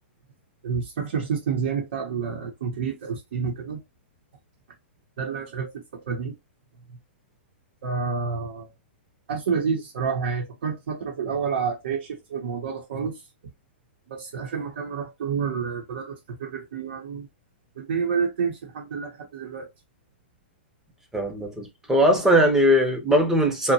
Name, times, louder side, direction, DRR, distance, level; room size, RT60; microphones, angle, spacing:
voice 1, 0.6-3.8 5.2-6.3 7.8-8.7 9.3-13.2 14.1-17.3 17.8-19.7, right 6 dB, 70° right, 0.7 m, -29 dB
voice 2, 21.1-23.7, equal, 5° right, 0.6 m, -20 dB
2.7 x 2.1 x 2.7 m
hypercardioid pair, 140°, 6 cm